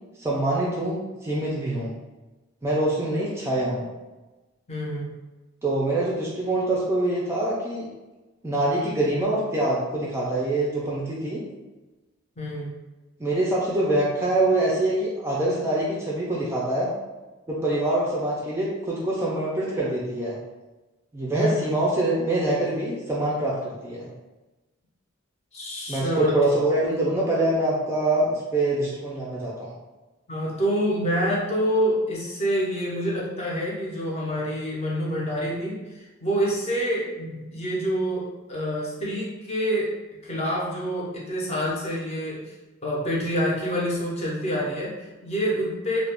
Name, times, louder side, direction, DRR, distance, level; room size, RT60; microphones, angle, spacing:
voice 1, 0.2-1.9 2.6-3.9 5.6-7.9 8.4-11.4 13.2-16.9 17.5-20.4 21.1-24.1 25.9-29.7, right 1 dB, 10° right, -6 dB, 0.4 m, -25 dB
voice 2, 4.7-5.1 12.4-12.8 21.4-21.9 25.5-26.4 30.3-39.9 40.2-42.5 42.8-46.1, equal, 30° left, -4 dB, 0.6 m, -27 dB
2.4 x 2.1 x 3.3 m, 1.1 s
head